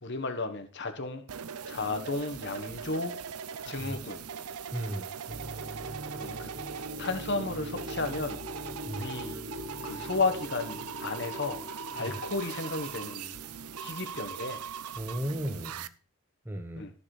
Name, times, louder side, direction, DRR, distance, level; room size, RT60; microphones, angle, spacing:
voice 1, 0.0-1.2 1.7-3.2 3.6-4.2 6.2-6.5 7.0-8.4 8.9-9.4 9.8-11.6 11.9-13.4 13.8-14.6 16.8-16.9, left 3 dB, 50° left, 7 dB, 1.4 m, -33 dB
sound 1, 1.3-15.9, right 7 dB, 85° right, 0.7 m, -40 dB
voice 2, 4.7-5.1 8.9-9.1 12.0-12.1 15.0-15.8 16.4-16.9, equal, 10° right, 5 dB, 1.1 m, -35 dB
sound 2, 5.3-14.4, equal, 45° right, 1.5 m, -43 dB
14.0 x 7.0 x 5.0 m, 0.37 s
head